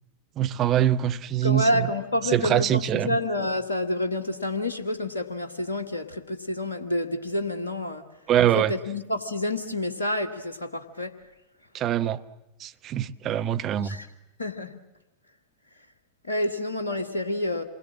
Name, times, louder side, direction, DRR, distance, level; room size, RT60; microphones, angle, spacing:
voice 1, 0.4-1.9 2.2-3.2 8.3-8.7 11.7-12.2 12.6-14.0, right 11 dB, 30° right, 0.9 m, -24 dB
voice 2, 1.4-8.0 8.5-11.1 13.8-14.1 14.4-14.8 16.2-17.6, left 1 dB, 75° left, 1.6 m, -28 dB
27.5 x 20.5 x 7.5 m
figure-of-eight pair, 90°, 0 cm